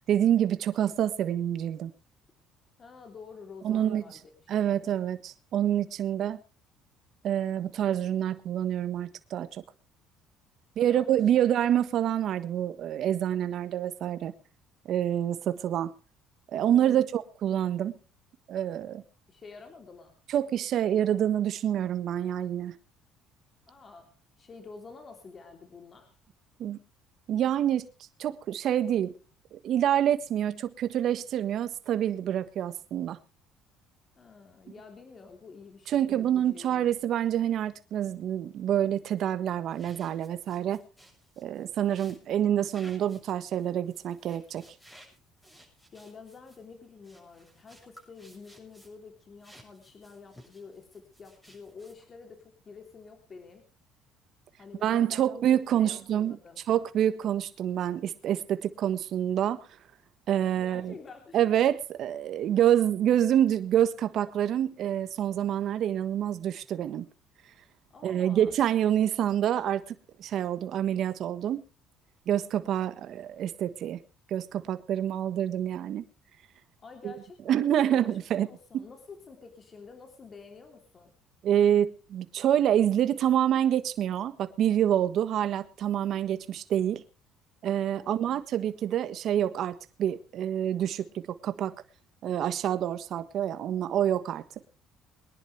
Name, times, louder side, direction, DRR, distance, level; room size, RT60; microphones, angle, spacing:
voice 1, 0.1-1.9 3.6-4.0 4.5-6.4 7.2-9.5 10.8-14.3 14.9-15.9 16.5-18.0 18.5-19.0 20.3-22.7 26.6-26.8 27.3-27.9 28.2-29.1 29.5-33.2 35.9-40.8 41.4-44.6 54.8-56.4 56.7-59.6 60.3-60.9 61.3-67.1 68.0-69.8 70.2-71.6 72.3-74.0 74.3-76.0 77.0-77.1 77.5-78.5 78.7-78.8 81.4-87.0 87.6-91.7 92.2-94.4, right 10 dB, 60° right, 1.4 m, -27 dB
voice 2, 2.8-4.8 10.8-11.2 16.7-17.1 19.3-20.2 23.7-26.2 34.2-36.9 45.9-53.6 54.6-56.6 60.6-61.4 67.9-68.6 76.8-81.1 88.0-88.2, left 4 dB, 35° left, 3.3 m, -49 dB
sound 1, 39.7-49.1 49.4-52.2, equal, 10° left, 7.0 m, -56 dB
23.0 x 11.0 x 3.4 m
cardioid pair, 100°, 0 cm